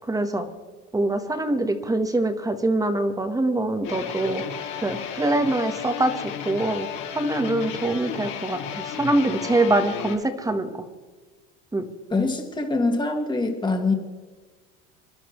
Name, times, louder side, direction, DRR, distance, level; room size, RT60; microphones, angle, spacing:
voice 1, 0.1-0.5 0.9-4.4 4.8-6.1 6.4-10.8 11.7-11.8, right 2 dB, 10° right, 8 dB, 1.3 m, -24 dB
sound 1, 3.8-10.2, left 8 dB, 55° left, 2.7 m, -34 dB
voice 2, 12.1-13.9, left 3 dB, 10° left, 3 dB, 2.0 m, -24 dB
26.0 x 11.5 x 3.1 m, 1.4 s
supercardioid pair, 135°, 37 cm